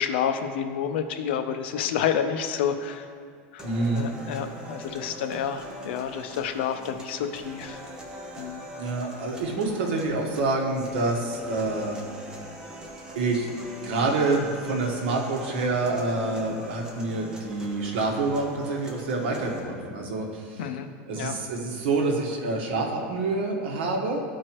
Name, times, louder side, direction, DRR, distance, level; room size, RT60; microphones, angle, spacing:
voice 1, 0.0-3.1 3.5-3.6 3.9-7.8 8.4-8.6 20.6-20.9 21.1-21.4, left 8 dB, 75° left, 8 dB, 0.6 m, -29 dB
sound 1, 3.6-19.6, equal, 10° right, 0.9 m, -42 dB
voice 2, 3.6-4.1 8.8-11.9 13.1-13.5 13.8-20.6 21.1-24.2, right 3 dB, 75° right, 0 dB, 1.4 m, -27 dB
13.5 x 4.8 x 3.0 m, 2.1 s
supercardioid pair, 170°, 6 cm